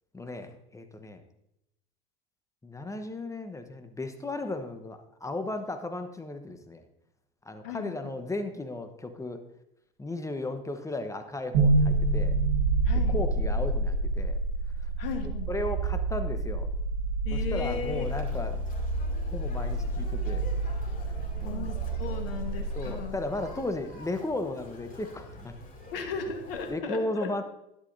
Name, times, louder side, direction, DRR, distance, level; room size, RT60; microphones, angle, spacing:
voice 1, 0.1-1.2 2.6-6.9 7.4-9.4 10.0-12.4 13.1-14.4 14.8-14.9 15.5-16.7 17.3-18.6 19.3-20.4 21.2-21.7 22.7-25.5 26.7-27.4, left 2 dB, 10° left, 7 dB, 1.1 m, -35 dB
voice 2, 7.6-8.1 12.8-13.2 15.0-15.5 17.2-18.1 21.4-23.2 25.9-27.3, left 6 dB, 75° left, 6 dB, 1.4 m, -36 dB
sound 1, 11.5-23.6, right 2 dB, 65° right, 1.8 m, -28 dB
Conversation, 17.6-26.7, left 2 dB, 30° left, 2.6 m, -47 dB
11.5 x 11.0 x 2.7 m, 0.83 s
hypercardioid pair, 80°, 30 cm